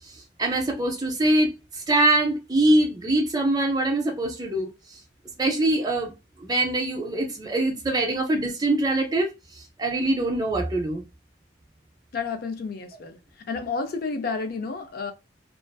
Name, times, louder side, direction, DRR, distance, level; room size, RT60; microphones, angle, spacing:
voice 1, 0.4-4.7 5.4-6.1 6.4-9.3 9.8-11.0, right 1 dB, 20° right, 0.4 m, -23 dB
voice 2, 12.1-13.2 13.5-15.1, left 4 dB, 50° left, 0.4 m, -30 dB
2.4 x 2.3 x 2.2 m
head